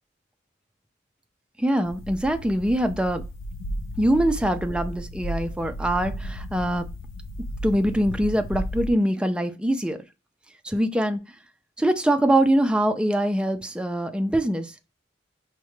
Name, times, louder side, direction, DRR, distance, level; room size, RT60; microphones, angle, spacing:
voice 1, 1.6-3.2 4.0-6.8 7.6-10.0 10.6-11.2 11.8-14.8, right 1 dB, 5° right, 0.3 m, -23 dB
sound 1, 1.8-8.9, equal, 80° left, 0.4 m, -34 dB
4.7 x 2.1 x 3.0 m
head